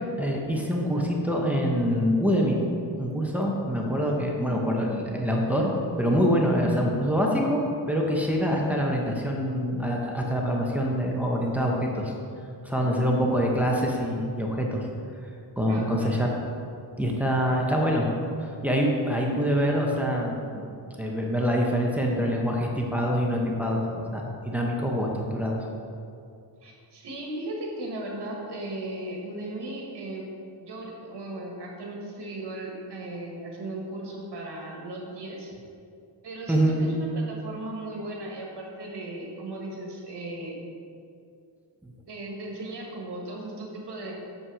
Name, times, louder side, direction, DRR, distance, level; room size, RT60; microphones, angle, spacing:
voice 1, 0.2-2.6 3.0-5.7 6.0-7.6 7.9-12.1 12.6-14.9 15.6-16.3 17.0-18.1 18.4-20.7 21.0-25.6 36.5-36.7 41.8-41.9, equal, 5° right, -2 dB, 0.8 m, -25 dB
voice 2, 15.7-16.1 26.6-30.3 30.6-35.5 36.2-40.6 42.1-44.1, right 1 dB, 60° right, -1 dB, 1.6 m, -36 dB
7.5 x 5.5 x 4.9 m, 2.5 s
wide cardioid pair, 150°, 45 cm